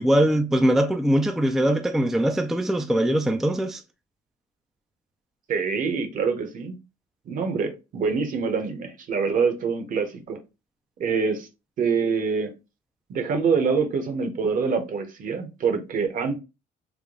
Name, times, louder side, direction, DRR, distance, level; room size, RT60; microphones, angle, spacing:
voice 1, 0.0-3.8, right 1 dB, ahead, 0.3 m, -22 dB
voice 2, 5.5-6.8 7.3-10.4 11.0-11.5 11.8-12.5 13.1-16.4, right 5 dB, 50° right, 0.9 m, -25 dB
3.5 x 2.2 x 3.6 m
cardioid pair, 110°, 17 cm